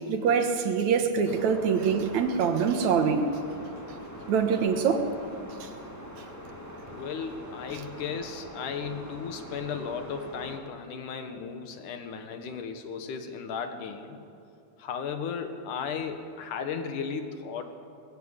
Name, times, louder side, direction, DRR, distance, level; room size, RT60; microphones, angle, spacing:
voice 1, 0.1-3.3 4.3-5.1 5.6-5.7, right 6 dB, 70° right, 7 dB, 2.6 m, -24 dB
sound 1, 1.3-10.6, equal, 5° left, 2.1 m, -43 dB
voice 2, 6.9-14.2 14.8-17.6, left 6 dB, 80° left, 7 dB, 2.9 m, -35 dB
20.5 x 16.0 x 8.2 m, 2.5 s
omnidirectional pair, 3.6 m